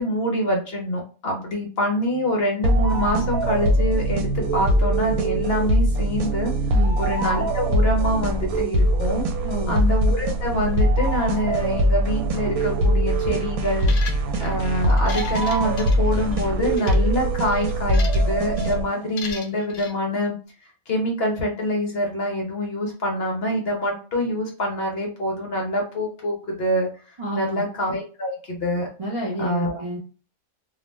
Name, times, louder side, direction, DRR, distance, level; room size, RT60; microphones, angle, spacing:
voice 1, 0.0-9.3 9.7-13.9 14.4-20.4 20.6-28.9 29.4-29.8, equal, 55° left, 0 dB, 0.7 m, -25 dB
sound 1, 2.6-19.1, right 1 dB, 85° right, 1.0 m, -22 dB
voice 2, 9.4-9.8 27.2-27.6 29.0-30.0, right 1 dB, 45° right, -5 dB, 0.4 m, -29 dB
sound 2, 13.8-14.5 14.9-16.4 16.7-17.0 17.5-18.3 18.6-18.8 19.2-19.9, left 5 dB, 85° left, 0.4 m, -37 dB
2.5 x 2.0 x 3.1 m, 0.37 s
omnidirectional pair, 1.5 m